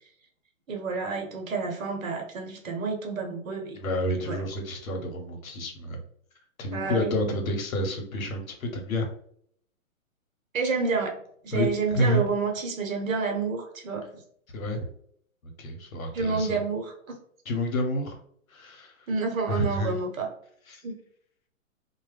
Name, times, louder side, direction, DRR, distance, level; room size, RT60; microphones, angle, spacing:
voice 1, 0.7-3.8 4.2-4.5 6.7-7.6 10.5-11.2 11.4-14.1 16.1-17.2 19.1-20.3 20.8-21.0, right 4 dB, 70° right, 2 dB, 1.0 m, -29 dB
voice 2, 3.7-6.0 6.6-9.1 11.5-12.2 14.5-14.8 15.4-16.6 17.5-18.2 18.5-18.9 19.5-19.9 20.7-20.8, left 1 dB, 75° left, 3 dB, 1.0 m, -29 dB
2.2 x 2.1 x 3.2 m, 0.63 s
hypercardioid pair, 135°, 41 cm